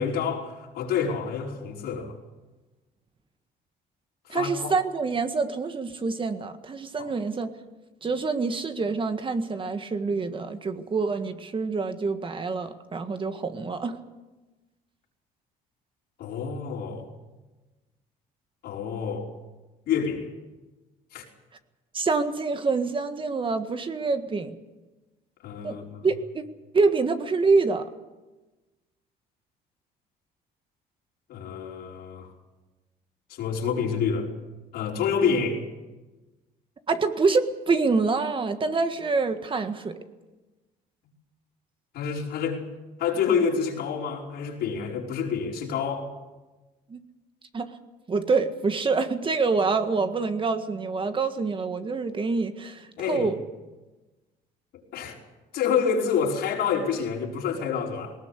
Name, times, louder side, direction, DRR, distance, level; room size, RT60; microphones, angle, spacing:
voice 1, 0.0-2.1 4.3-4.7 7.0-7.1 16.2-17.1 18.6-19.3 19.9-20.3 21.1-21.2 25.4-26.1 31.3-32.3 33.3-34.3 34.7-35.6 41.9-42.6 43.0-46.1 53.0-53.3 54.9-55.2 55.5-58.1, left 6 dB, 75° left, -1 dB, 5.1 m, -28 dB
voice 2, 4.3-7.5 8.0-14.0 21.9-24.5 25.6-25.8 26.0-26.4 26.7-27.9 36.9-40.0 46.9-47.0 47.5-47.7 48.1-53.4, right 4 dB, 30° right, 8 dB, 1.7 m, -26 dB
20.0 x 19.0 x 8.3 m, 1.1 s
cardioid pair, 110°, 17 cm